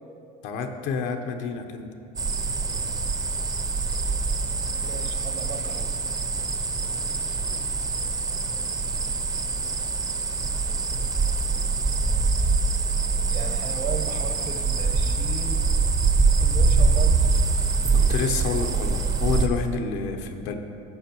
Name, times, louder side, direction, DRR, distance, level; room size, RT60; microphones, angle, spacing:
voice 1, 0.4-1.9 17.9-20.5, left 5 dB, 80° left, 5 dB, 0.9 m, -28 dB
sound 1, 2.2-19.5, right 4 dB, 20° right, 0.6 m, -24 dB
voice 2, 4.8-5.9 13.3-15.7 16.3-17.3, right 5 dB, 55° right, 5 dB, 1.0 m, -35 dB
15.0 x 6.6 x 3.0 m, 2.7 s
cardioid pair, 125°, 20 cm